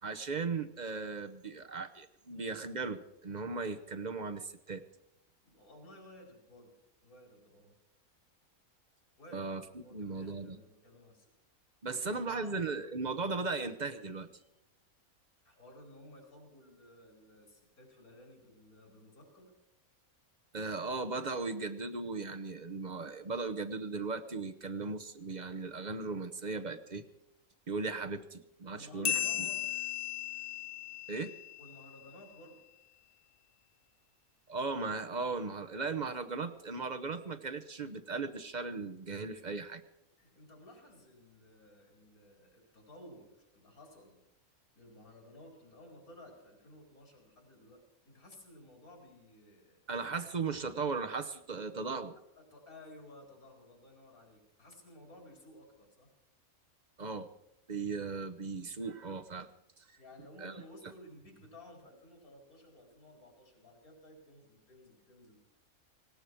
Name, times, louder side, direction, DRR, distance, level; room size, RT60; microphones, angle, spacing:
voice 1, 0.0-4.8 9.3-10.6 11.8-14.3 20.5-27.1 27.7-29.5 31.1-31.3 34.5-39.8 49.9-52.2 57.0-57.3 57.7-59.5 59.8-59.9 60.4-60.5, right 4 dB, 35° right, 7 dB, 0.8 m, -37 dB
voice 2, 5.4-6.7 7.0-7.8 9.2-11.3 11.9-12.6 15.4-19.5 28.7-29.7 31.6-32.6 40.2-44.2 44.7-49.8 52.4-56.1 60.0-65.5, left 1 dB, 85° left, 1 dB, 4.8 m, -55 dB
sound 1, 29.0-32.1, left 11 dB, 50° left, 0.8 m, -36 dB
18.5 x 17.5 x 4.6 m, 0.87 s
omnidirectional pair, 1.5 m